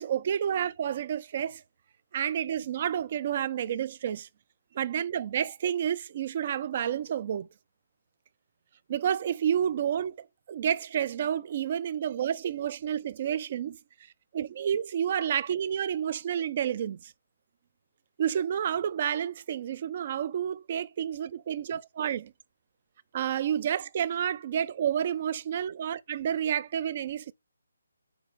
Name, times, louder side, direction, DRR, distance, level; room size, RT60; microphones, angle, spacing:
voice 1, 0.0-1.6 2.1-4.3 4.7-7.5 8.9-10.1 10.5-13.8 14.3-17.1 18.2-22.3 23.1-27.3, right 9 dB, 40° right, 0.5 m, -30 dB
6.8 x 4.5 x 4.1 m
figure-of-eight pair, 150°, 0 cm